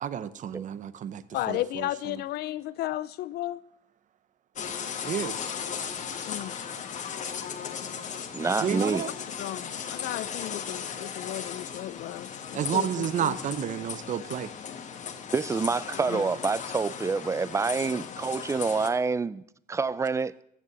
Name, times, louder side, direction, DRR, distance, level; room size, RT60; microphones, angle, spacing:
voice 1, 0.0-2.2 5.0-5.4 8.6-9.1 12.5-14.5, right 9 dB, 50° right, 0.7 m, -31 dB
voice 2, 1.3-3.6 6.3-6.5 9.4-13.4, left 15 dB, 70° left, 0.6 m, -34 dB
sound 1, 4.6-18.9, left 7 dB, 45° left, 1.3 m, -36 dB
voice 3, 8.3-9.1 15.3-19.4 19.7-20.3, right 4 dB, 15° right, 0.4 m, -27 dB
14.5 x 6.7 x 7.4 m
cardioid pair, 110°, 17 cm